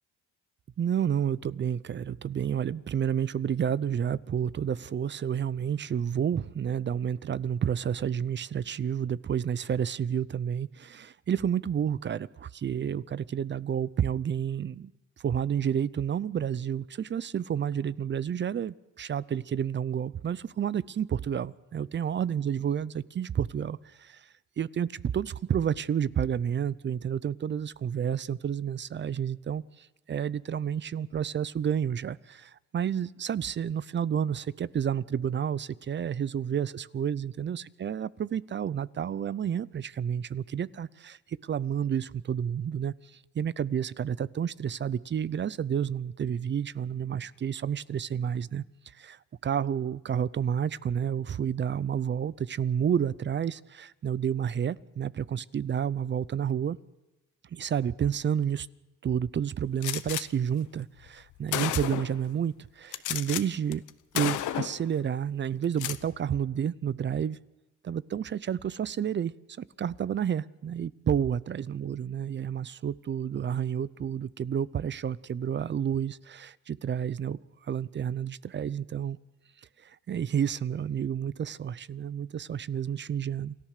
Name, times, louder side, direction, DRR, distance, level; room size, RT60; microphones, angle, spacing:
voice 1, 0.8-14.9 15.2-24.3 24.6-42.9 43.3-48.6 49.0-56.8 57.5-58.7 59.0-63.8 64.1-67.4 67.8-79.2 79.8-83.6, right 8 dB, 40° right, 20 dB, 0.6 m, -30 dB
Gunshot gunfire, 59.8-60.2 61.1-61.2 61.5-62.2 62.9-63.4 63.7-63.9 64.1-64.8 65.6-66.0, left 13 dB, 80° left, 1.0 m, -31 dB
28.0 x 14.0 x 6.6 m, 1.0 s
cardioid pair, 90°, 30 cm